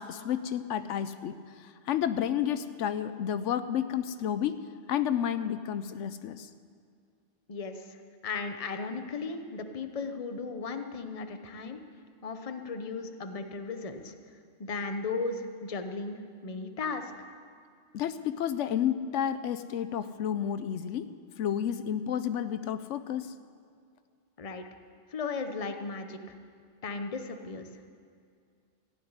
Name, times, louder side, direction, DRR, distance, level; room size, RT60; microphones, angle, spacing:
voice 1, 0.0-4.6 4.9-6.5 17.9-21.1 21.4-23.3, left 9 dB, 80° left, 12 dB, 0.9 m, -31 dB
voice 2, 7.5-8.0 8.2-11.8 12.2-14.1 14.6-17.1 24.4-24.7 25.1-26.2 26.8-27.7, left 4 dB, 35° left, 7 dB, 0.8 m, -36 dB
15.0 x 7.9 x 9.7 m, 2.2 s
omnidirectional pair, 1.3 m